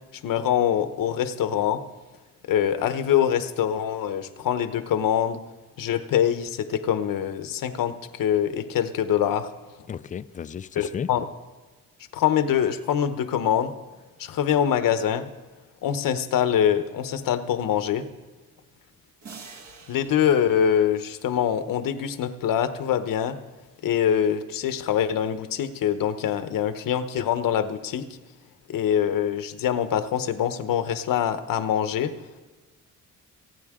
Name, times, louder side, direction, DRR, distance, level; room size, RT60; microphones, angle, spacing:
voice 1, 0.2-1.8 2.5-5.4 5.8-9.5 10.8-11.3 12.1-13.7 14.2-15.3 15.8-18.0 19.9-23.4 23.8-28.1 28.7-32.1, left 9 dB, 80° left, 10 dB, 1.0 m, -24 dB
voice 2, 9.9-11.1, left 7 dB, 25° left, 14 dB, 0.4 m, -33 dB
sound 1, 19.2-22.0, right 5 dB, 55° right, 1.8 m, -48 dB
28.0 x 9.4 x 3.7 m, 1.3 s
cardioid pair, 135°, 33 cm